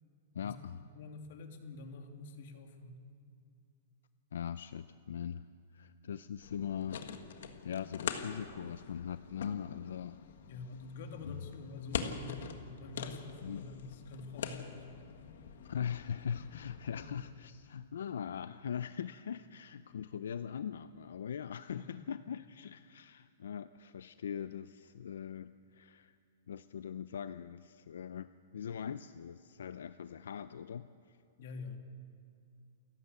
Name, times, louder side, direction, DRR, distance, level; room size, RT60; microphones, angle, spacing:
voice 1, 0.3-0.8 4.3-5.5 5.7-7.0 7.6-10.2 11.3-11.4 13.4-13.6 15.6-26.1 26.5-31.2, left 8 dB, 90° left, 13 dB, 0.5 m, -41 dB
voice 2, 0.9-3.0 10.5-12.5 12.8-14.9 16.9-17.1 21.7-22.0 31.4-31.8, left 4 dB, 55° left, 5 dB, 2.4 m, -46 dB
sound 1, 6.4-17.3, left 7 dB, 70° left, 1.6 m, -44 dB
28.5 x 12.0 x 8.2 m, 2.4 s
hypercardioid pair, 165°, 0 cm